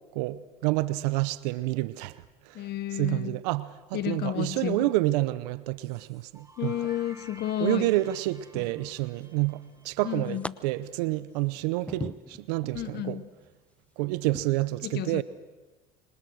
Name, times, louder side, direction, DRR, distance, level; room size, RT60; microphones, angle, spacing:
voice 1, 0.1-6.8 7.6-13.2 14.0-15.2, right 18 dB, 85° right, 0.8 m, -29 dB
voice 2, 2.5-3.4 3.9-4.9 6.6-7.9 10.0-10.4 12.7-13.2 14.8-15.2, left 12 dB, 55° left, 1.1 m, -31 dB
sound 1, 5.8-10.6, right 2 dB, 15° right, 3.7 m, -53 dB
sound 2, 7.4-7.8 8.5-9.4 9.8-10.5 11.0-12.8 13.3-13.5 14.3-14.5, left 1 dB, 5° left, 0.9 m, -41 dB
26.5 x 25.5 x 6.4 m
supercardioid pair, 85°, 20 cm